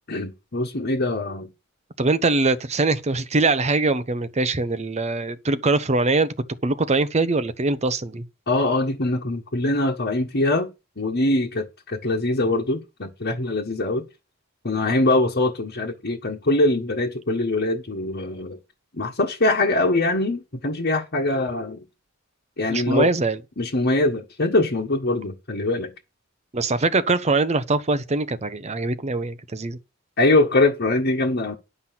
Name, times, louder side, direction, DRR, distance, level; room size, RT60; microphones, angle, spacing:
voice 1, 0.1-1.5 8.5-10.7 11.0-14.0 14.6-18.6 18.9-21.8 22.6-23.1 23.6-25.9 30.2-31.6, left 2 dB, 50° left, 1.4 m, -23 dB
voice 2, 2.0-6.3 6.6-8.2 22.7-23.4 26.5-29.8, right 3 dB, 35° right, 0.8 m, -22 dB
11.5 x 5.9 x 5.8 m
head